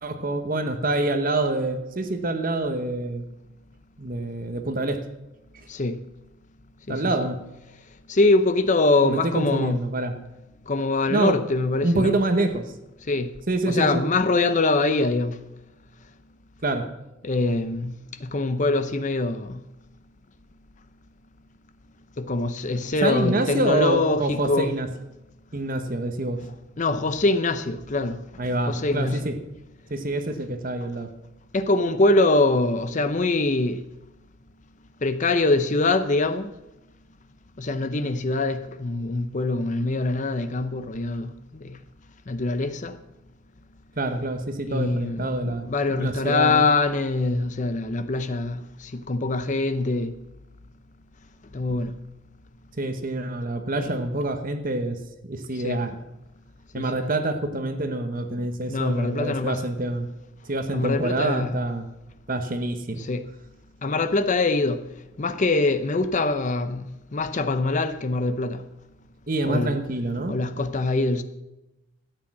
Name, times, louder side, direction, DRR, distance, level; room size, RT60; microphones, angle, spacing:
voice 1, 0.0-3.2 4.0-5.0 6.9-7.4 9.0-10.2 11.1-11.4 11.8-12.6 13.5-14.0 16.6-16.9 23.0-24.9 25.5-26.4 28.4-29.3 29.9-31.1 44.0-46.7 52.8-55.0 55.3-56.0 56.7-60.1 60.4-61.9 62.3-63.1 69.3-70.4, right 2 dB, 45° right, 1.1 m, -26 dB
voice 2, 6.9-7.3 8.1-9.8 10.7-12.1 13.1-13.3 13.7-15.4 17.2-17.9 18.2-19.6 22.2-24.7 26.8-28.2 28.7-29.3 31.5-33.8 35.0-36.5 37.6-41.8 42.3-43.0 44.7-50.1 51.5-51.9 53.8-53.9 55.6-55.8 56.8-57.1 58.7-59.6 60.7-61.6 63.0-63.3 63.8-64.8 65.2-68.6 69.4-69.8 70.3-71.2, left 3 dB, 40° left, 0.7 m, -24 dB
13.5 x 8.7 x 7.3 m
head